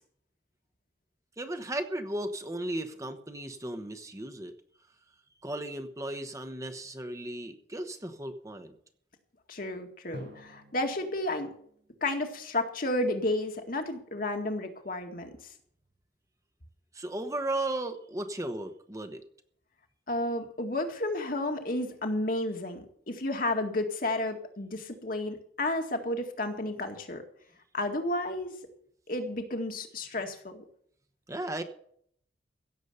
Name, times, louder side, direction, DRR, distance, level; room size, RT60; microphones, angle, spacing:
voice 1, 1.4-4.5 5.4-8.8 16.9-19.2 31.3-31.6, right 1 dB, 20° right, 7 dB, 1.1 m, -35 dB
voice 2, 9.5-11.5 12.0-15.3 20.1-27.2 27.7-28.5 29.1-30.6, left 1 dB, 50° left, 4 dB, 2.0 m, -32 dB
Drum, 10.1-12.8, equal, 75° right, 7.2 m, -50 dB
16.5 x 7.3 x 6.9 m, 0.63 s
head